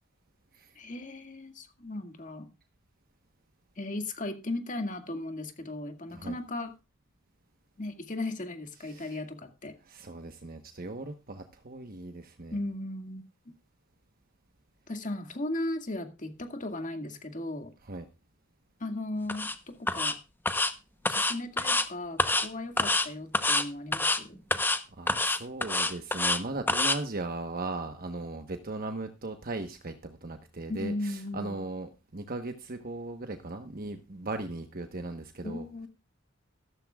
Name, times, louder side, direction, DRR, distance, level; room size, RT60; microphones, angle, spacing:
voice 1, 0.8-2.5 3.8-6.7 7.8-9.7 12.5-13.5 14.9-17.7 18.8-20.2 21.1-24.4 30.7-31.6 35.4-35.9, left 2 dB, 40° left, 2.0 m, -36 dB
voice 2, 8.9-9.2 9.9-12.6 17.8-18.0 24.9-35.7, right 2 dB, 45° right, 1.1 m, -38 dB
sound 1, 19.3-19.5 19.9-20.1 20.5-20.7 21.1-21.9 22.2-22.5 22.8-23.1 23.3-23.6 23.9-24.2 24.5-24.8 25.1-26.4 26.7-27.0, left 2 dB, 10° left, 0.9 m, -26 dB
14.5 x 13.5 x 2.4 m
head